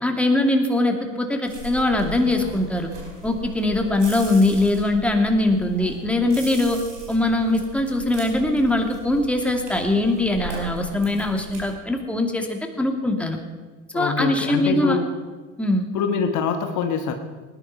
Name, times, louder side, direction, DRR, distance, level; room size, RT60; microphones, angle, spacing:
voice 1, 0.0-2.9 3.2-6.8 7.1-13.4 13.9-15.0 15.6-15.9, left 2 dB, 5° left, 3 dB, 2.3 m, -22 dB
sound 1, 1.4-11.7, right 2 dB, 90° right, 4.6 m, -38 dB
voice 2, 13.9-15.0 15.9-17.1, left 6 dB, 55° left, 6 dB, 1.5 m, -24 dB
19.5 x 10.5 x 5.6 m, 1.3 s
hypercardioid pair, 70°, 36 cm